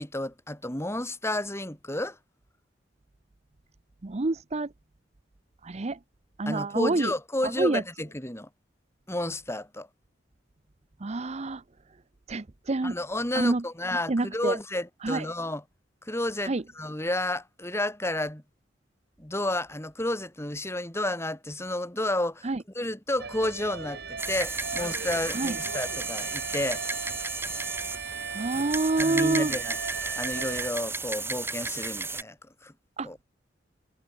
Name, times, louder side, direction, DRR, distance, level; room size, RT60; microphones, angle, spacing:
voice 1, 0.0-2.2 6.5-8.5 9.1-9.9 12.8-15.6 16.0-18.4 19.2-26.8 29.0-29.8 30.2-32.4 32.6-32.7 33.0-33.2, left 1 dB, 15° left, 4.2 m, -31 dB
voice 2, 4.0-4.7 5.6-6.0 6.4-7.1 7.4-7.8 11.0-11.6 12.3-12.9 13.3-13.6 14.1-14.6 15.0-15.3 16.4-16.6 22.4-22.6 25.3-25.6 28.3-29.5 33.0-33.1, right 2 dB, 35° right, 0.7 m, -27 dB
sound 1, 23.2-30.7, right 5 dB, 60° right, 3.0 m, -37 dB
sound 2, 24.2-32.2, right 3 dB, 15° right, 3.8 m, -34 dB
head